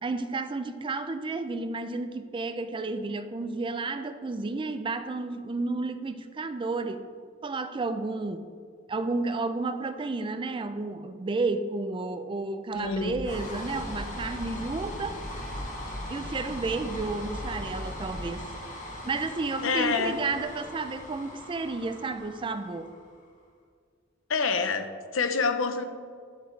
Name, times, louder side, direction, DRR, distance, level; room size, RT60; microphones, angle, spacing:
voice 1, 0.0-7.1 7.4-8.5 8.9-15.2 16.1-18.5 18.9-22.9, right 3 dB, 25° right, 10 dB, 0.4 m, -32 dB
voice 2, 12.7-13.2 19.6-20.2 24.3-25.8, left 4 dB, 70° left, 9 dB, 0.7 m, -27 dB
sound 1, 12.7-23.2, left 1 dB, 40° left, 1.5 m, -39 dB
10.5 x 7.3 x 3.2 m, 2.1 s
head